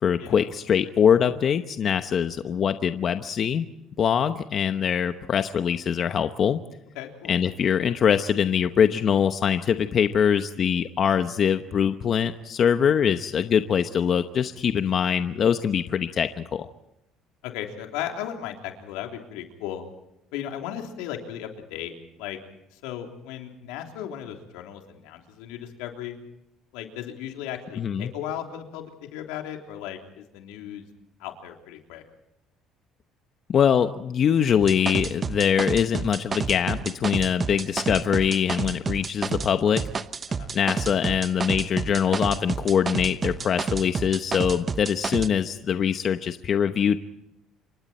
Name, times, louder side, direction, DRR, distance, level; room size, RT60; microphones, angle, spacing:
voice 1, 0.0-3.7 4.0-6.6 7.3-16.7 27.8-28.1 33.5-39.8 40.5-47.0, left 8 dB, 45° left, 9 dB, 1.0 m, -23 dB
voice 2, 6.9-7.3 17.4-19.8 20.3-21.9 22.2-22.4 22.7-26.2 26.7-30.9 31.2-32.0 40.4-40.5, left 10 dB, 90° left, 3 dB, 3.4 m, -36 dB
sound 1, 34.6-39.5 39.8-45.3, right 5 dB, 30° right, 0.9 m, -29 dB
28.0 x 24.5 x 4.4 m, 0.84 s
cardioid pair, 105°, 0 cm